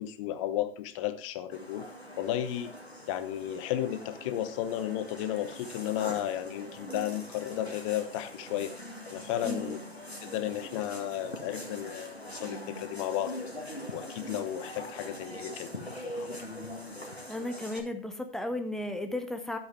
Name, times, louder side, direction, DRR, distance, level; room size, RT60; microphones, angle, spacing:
voice 1, 0.0-1.9 2.2-2.7 3.1-8.7 9.1-9.8 10.2-13.4 13.9-16.4, left 12 dB, 30° left, 12 dB, 0.9 m, -33 dB
sound 1, 1.5-17.8, equal, 90° left, 1.9 m, -43 dB
voice 2, 9.4-9.8 17.3-19.6, left 1 dB, ahead, 7 dB, 0.6 m, -34 dB
12.0 x 8.1 x 3.4 m, 0.44 s
figure-of-eight pair, 110°, 31 cm